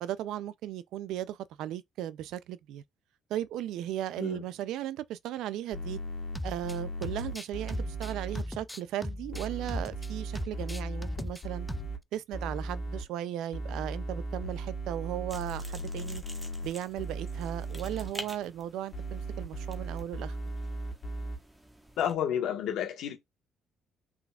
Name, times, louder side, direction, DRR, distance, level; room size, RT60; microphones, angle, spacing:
voice 1, 0.0-2.8 3.3-6.0 6.4-11.7 12.1-16.2 16.6-20.4, right 12 dB, 80° right, 0.4 m, -36 dB
sound 1, 5.7-8.4 9.3-12.0 12.3-13.0 13.5-16.7 17.0-18.1 18.9-21.4, right 2 dB, 50° left, 1.8 m, -37 dB
sound 2, 6.4-6.8 7.0-10.1 10.4-11.4 11.7-12.0, left 1 dB, 5° left, 0.3 m, -38 dB
sound 3, 15.3-22.2, right 1 dB, 10° right, 1.2 m, -49 dB
voice 2, 22.0-23.2, left 9 dB, 75° left, 1.3 m, -30 dB
5.7 x 3.8 x 2.4 m
cardioid pair, 100°, 0 cm